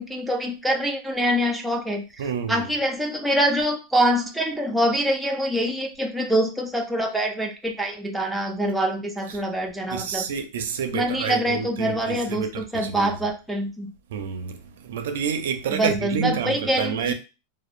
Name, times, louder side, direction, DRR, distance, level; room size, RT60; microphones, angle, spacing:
voice 1, 0.0-2.0 2.5-10.3 10.9-13.9 15.7-17.1, equal, ahead, 0.3 m, -25 dB
voice 2, 2.2-2.7 9.3-9.4 9.9-13.2 14.1-17.1, right 6 dB, 80° right, 0.4 m, -29 dB
2.8 x 2.0 x 2.4 m
supercardioid pair, 155°, 0 cm